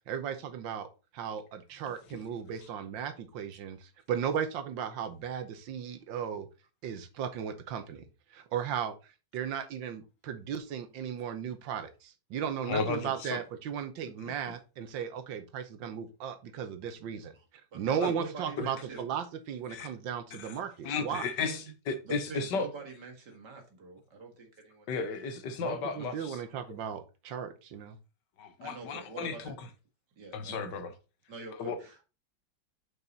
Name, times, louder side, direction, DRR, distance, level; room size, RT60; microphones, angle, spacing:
voice 1, 0.1-0.9 1.1-6.5 6.8-8.0 8.3-17.3 17.7-21.2 25.6-28.0 30.5-30.6, right 8 dB, 80° right, 1.6 m, -36 dB
voice 2, 12.7-13.4 14.2-14.3 18.0-18.1 18.6-18.7 19.7-19.9 20.3-20.6 20.8-22.7 24.9-26.4 28.4-29.5 30.3-30.9 31.5-31.8, left 4 dB, 70° left, 1.5 m, -34 dB
voice 3, 17.7-19.0 21.4-21.7 22.0-25.2 28.6-29.5 30.2-30.6 31.3-32.0, right 4 dB, 65° right, 2.3 m, -45 dB
6.0 x 5.7 x 3.9 m
omnidirectional pair, 2.0 m